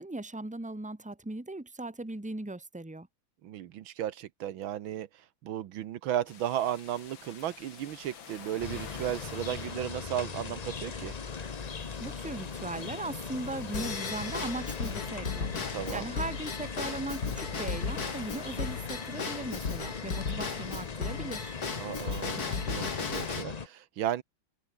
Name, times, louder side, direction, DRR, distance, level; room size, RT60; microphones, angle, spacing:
voice 1, 0.0-3.1 12.0-21.6, right 2 dB, 5° right, 1.7 m, -38 dB
voice 2, 3.4-5.1 5.4-11.1 15.7-16.1 21.8-24.2, right 11 dB, 75° right, 1.7 m, -35 dB
sound 1, 6.3-22.6, left 7 dB, 65° left, 2.8 m, -52 dB
sound 2, 8.6-23.7, left 5 dB, 85° left, 0.3 m, -39 dB
Drum kit / Drum / Bell, 13.7-23.4, left 5 dB, 45° left, 2.9 m, -36 dB
omnidirectional pair, 2.2 m